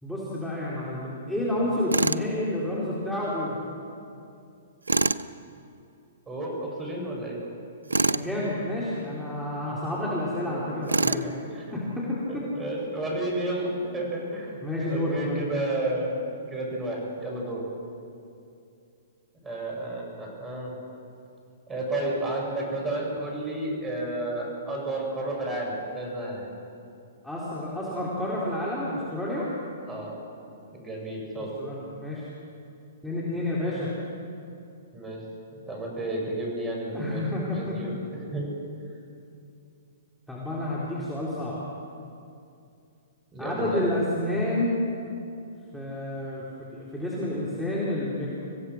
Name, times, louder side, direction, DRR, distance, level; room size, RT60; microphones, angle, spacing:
voice 1, 0.0-3.6 8.1-11.3 11.7-12.4 14.6-15.4 27.2-29.5 31.6-32.2 33.0-33.9 36.9-37.8 40.3-41.6 43.4-44.8 45.7-48.3, left 1 dB, 5° left, -7 dB, 4.0 m, -29 dB
Tools, 1.9-2.3 4.9-5.2 7.9-8.3 10.9-11.3, right 3 dB, 85° right, 0.5 m, -24 dB
voice 2, 6.3-7.4 10.5-10.6 11.1-11.7 12.3-14.6 14.9-16.1 16.5-17.7 19.4-20.7 21.7-26.5 29.9-30.2 30.7-31.5 34.9-35.2 35.7-37.3 37.6-38.5 43.3-43.8, right 1 dB, 15° right, -1 dB, 7.0 m, -32 dB
26.0 x 16.0 x 6.5 m, 2.5 s
hypercardioid pair, 120°, 0 cm